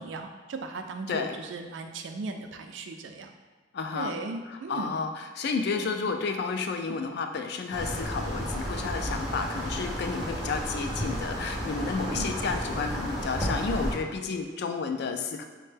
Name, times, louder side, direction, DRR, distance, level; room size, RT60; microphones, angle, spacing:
voice 1, 0.0-3.3 3.9-4.9 5.7-5.9 12.1-12.3, right 3 dB, 80° right, 5 dB, 0.4 m, -37 dB
voice 2, 3.7-4.2 4.5-15.4, left 4 dB, 60° left, 5 dB, 0.4 m, -31 dB
sound 1, 7.7-14.0, equal, 5° right, 0.7 m, -32 dB
4.3 x 2.1 x 3.3 m, 1.5 s
head